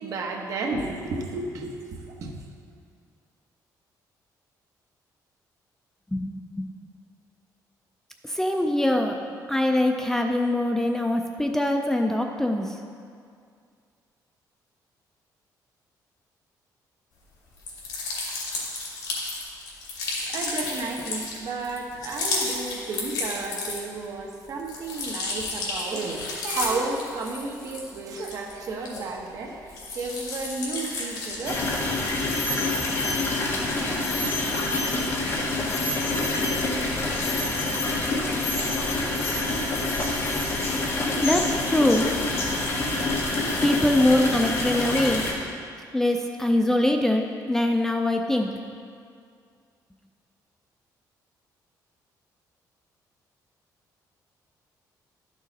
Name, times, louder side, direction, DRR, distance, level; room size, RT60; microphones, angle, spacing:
voice 1, 0.0-2.5 20.3-32.0, right 3 dB, 55° right, 1 dB, 1.1 m, -32 dB
voice 2, 6.1-6.7 8.2-9.1 9.5-12.8 41.2-42.1 43.4-45.2 45.9-48.5, left 1 dB, 5° left, 3 dB, 0.4 m, -23 dB
sound 1, 17.6-24.1 24.4-29.3 29.7-31.5, left 3 dB, 75° left, 2.4 m, -32 dB
sound 2, 31.4-45.3, left 2 dB, 35° left, 1.3 m, -26 dB
12.0 x 6.4 x 4.0 m, 2.2 s
cardioid pair, 160°, 7 cm